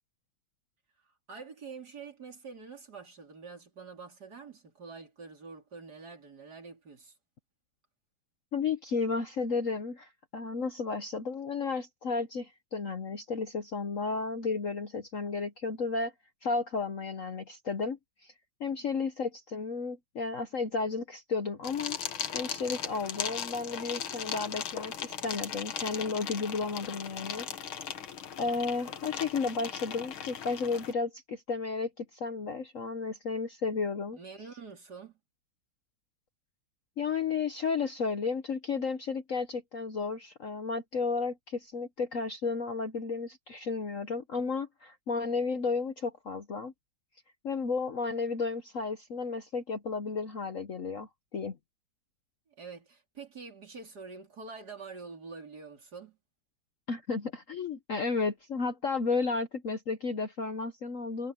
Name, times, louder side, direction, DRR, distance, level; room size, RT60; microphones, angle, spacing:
voice 1, 1.0-7.2 18.7-18.9 34.2-35.2 52.5-56.2, right 4 dB, 50° right, 3.9 m, -46 dB
voice 2, 8.5-16.1 16.4-18.3 18.6-22.0 22.3-27.5 28.4-34.2 37.0-46.7 47.4-51.6 56.9-61.3, left 4 dB, 50° left, 1.1 m, -33 dB
sound 1, 21.6-30.9, left 8 dB, 80° left, 2.3 m, -38 dB
omnidirectional pair, 2.2 m